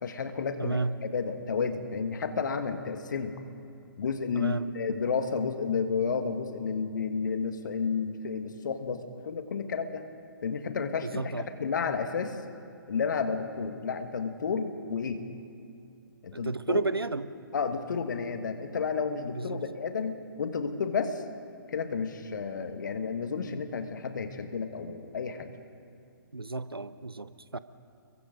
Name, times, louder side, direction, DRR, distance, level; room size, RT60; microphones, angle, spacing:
voice 1, 0.0-3.4 4.0-10.0 10.4-11.2 11.6-12.4 12.9-15.2 16.2-16.8 17.5-21.2 21.7-25.6, left 5 dB, 55° left, 8 dB, 1.7 m, -31 dB
voice 2, 0.6-1.0 4.3-4.6 11.0-11.4 16.3-17.3 19.3-19.6 26.3-27.6, right 3 dB, 85° right, 14 dB, 0.8 m, -32 dB
29.5 x 23.0 x 3.9 m, 2.5 s
figure-of-eight pair, 130°, 12 cm